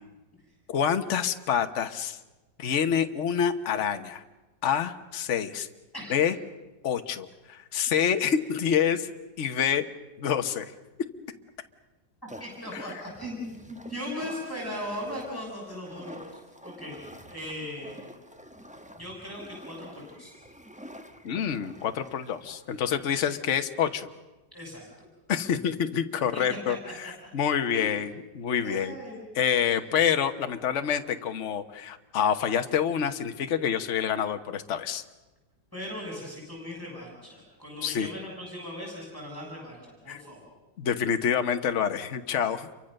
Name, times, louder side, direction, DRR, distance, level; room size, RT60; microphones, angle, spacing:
voice 1, 0.7-2.2 2.6-4.2 4.6-5.7 6.1-6.3 6.8-9.1 9.4-9.8 10.2-10.6 12.7-12.9 21.2-24.1 25.3-29.0 29.3-35.0 37.8-38.1 40.1-40.2 40.8-42.7, left 8 dB, 45° left, 8 dB, 1.3 m, -27 dB
sound 1, 12.3-23.3, equal, 5° right, 1.0 m, -48 dB
voice 2, 12.4-16.2 16.6-17.0 17.3-18.2 19.0-20.3 24.5-25.1 26.3-26.6 27.0-27.1 27.7-27.9 28.6-29.2 29.7-29.8 35.7-40.5, left 1 dB, 10° left, -1 dB, 7.0 m, -38 dB
29.0 x 24.0 x 6.6 m, 1.1 s
omnidirectional pair, 2.0 m